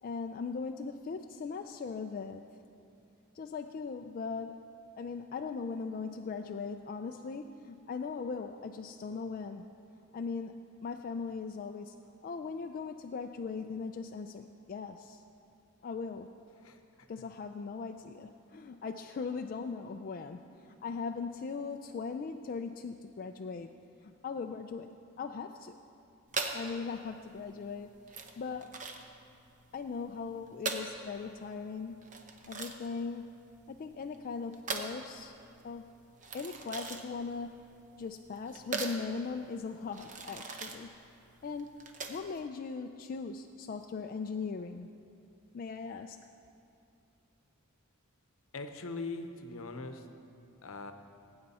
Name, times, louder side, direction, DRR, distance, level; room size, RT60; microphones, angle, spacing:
voice 1, 0.0-2.4 3.3-4.6 5.0-9.7 10.1-12.0 12.2-15.2 15.8-16.3 17.1-23.7 24.0-25.8 26.5-27.9 28.4-28.8 29.7-32.0 32.5-35.3 35.6-35.9 36.3-37.6 38.0-40.9 41.4-44.9 45.5-46.2, left 5 dB, 40° left, 5 dB, 0.3 m, -39 dB
voice 2, 16.6-17.1 48.5-50.1 50.6-50.9, left 3 dB, 70° left, 7 dB, 0.8 m, -41 dB
sound 1, 26.3-42.4, right 4 dB, 35° right, 0.8 m, -41 dB
18.0 x 8.8 x 4.2 m, 2.7 s
head